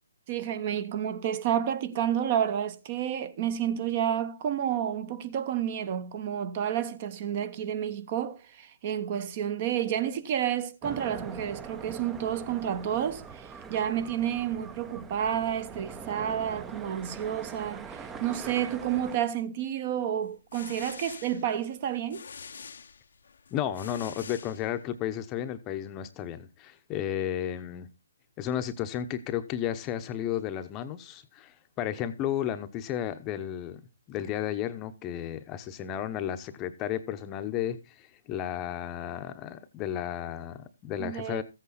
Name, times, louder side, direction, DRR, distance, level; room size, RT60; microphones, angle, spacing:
voice 1, 0.3-22.2 41.0-41.4, right 10 dB, 35° right, 1.0 m, -30 dB
sound 1, 10.8-19.2, right 5 dB, 10° right, 0.7 m, -43 dB
sound 2, 20.2-25.1, left 6 dB, 65° left, 0.8 m, -46 dB
voice 2, 23.5-27.9 28.4-33.8 34.1-41.4, left 10 dB, 20° left, 0.9 m, -33 dB
14.5 x 8.4 x 4.0 m
hypercardioid pair, 150°, 0 cm